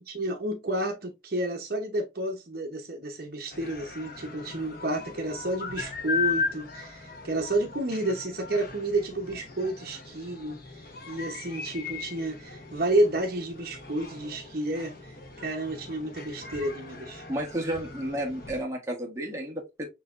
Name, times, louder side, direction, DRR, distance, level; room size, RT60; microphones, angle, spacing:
voice 1, 0.1-17.2, right 1 dB, 50° right, 0.8 m, -30 dB
sound 1, 3.5-18.6, left 5 dB, 50° left, 1.0 m, -37 dB
voice 2, 17.3-19.9, right 1 dB, 15° right, 1.2 m, -32 dB
6.6 x 2.8 x 2.5 m
head